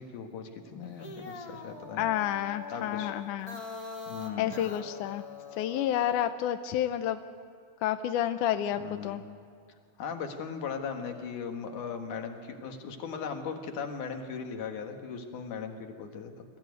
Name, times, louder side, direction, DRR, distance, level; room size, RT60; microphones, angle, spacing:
voice 1, 0.0-2.1 2.7-3.1 4.1-4.5 8.8-9.2 10.0-16.4, left 6 dB, 65° left, 4 dB, 2.9 m, -38 dB
sound 1, 0.8-6.3, left 3 dB, 45° left, 1.2 m, -43 dB
voice 2, 2.0-3.6 4.4-5.2 5.6-7.2 7.8-9.2, left 11 dB, 80° left, 9 dB, 1.9 m, -30 dB
24.0 x 14.5 x 9.5 m, 2.3 s
omnidirectional pair, 4.2 m